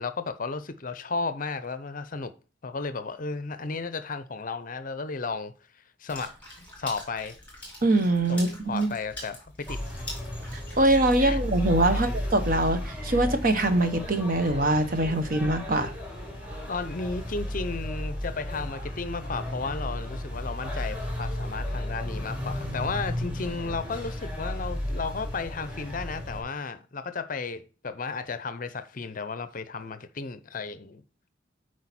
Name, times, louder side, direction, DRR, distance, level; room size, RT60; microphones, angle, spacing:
voice 1, 0.0-2.3 2.6-5.5 6.0-7.4 8.3-10.0 11.2-11.4 11.9-12.1 16.7-31.0, left 4 dB, 45° left, 0.6 m, -34 dB
Water / Splash splatter, 6.1-11.9, left 1 dB, 10° left, 3.7 m, -44 dB
voice 2, 7.8-8.9 10.5-15.9, right 2 dB, 45° right, 1.0 m, -23 dB
sound 1, 9.7-26.4, left 1 dB, 5° right, 2.7 m, -34 dB
8.7 x 4.7 x 4.2 m
head